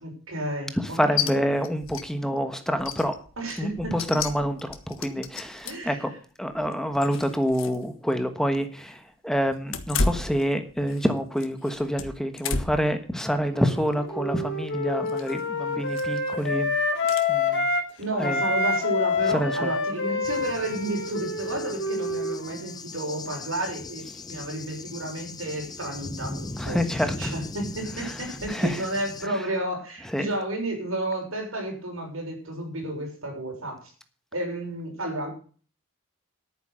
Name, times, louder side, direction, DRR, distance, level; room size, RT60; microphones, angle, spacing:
voice 1, 0.0-1.5 3.4-3.9 5.6-6.0 18.0-33.8 34.3-35.3, right 1 dB, 90° right, 1 dB, 6.3 m, -32 dB
voice 2, 0.8-3.1 3.6-6.1 6.4-16.7 17.3-17.7 18.2-18.4 19.3-19.7 26.6-27.3 28.0-28.2 28.5-28.9 29.2-29.4 30.0-30.3, equal, 5° left, 8 dB, 1.3 m, -27 dB
sound 1, 1.2-1.3 1.6-2.1 2.4-2.5 2.8-5.9 6.5-7.8 8.1-8.2 9.6-11.1 11.4-12.9 13.4-13.7 15.1-15.4 15.9-16.3 17.1-17.3, left 4 dB, 80° left, 1.6 m, -32 dB
Wind instrument woodwind instrument, 13.5-17.9 18.2-22.7, left 3 dB, 60° left, 3.3 m, -27 dB
Cricket / Thunder, 20.2-29.3, left 2 dB, 20° left, 0.7 m, -38 dB
11.5 x 9.2 x 6.4 m, 0.41 s
head